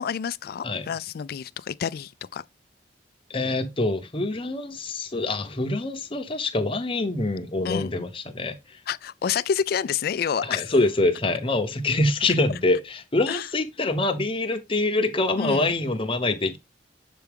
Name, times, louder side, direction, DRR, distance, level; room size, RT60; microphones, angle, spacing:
voice 1, 0.0-2.4 7.6-7.9 8.9-10.7 13.3-13.5 15.4-15.7, left 7 dB, 55° left, 0.3 m, -28 dB
voice 2, 3.3-8.6 10.4-16.6, left 2 dB, 30° left, 0.8 m, -25 dB
6.9 x 4.6 x 3.5 m
head